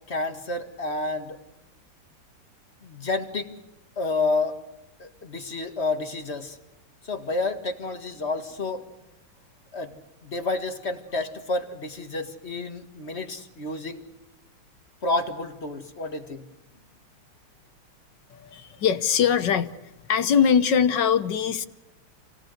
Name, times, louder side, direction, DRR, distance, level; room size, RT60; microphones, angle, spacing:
voice 1, 0.1-1.4 2.8-3.5 4.0-4.6 5.0-6.6 7.0-8.8 9.7-9.9 10.2-14.0 15.0-16.4, left 3 dB, 30° left, 6 dB, 1.9 m, -29 dB
voice 2, 18.3-19.7 20.1-21.7, left 7 dB, 60° left, 11 dB, 1.5 m, -22 dB
28.0 x 18.0 x 6.5 m, 0.97 s
omnidirectional pair, 2.3 m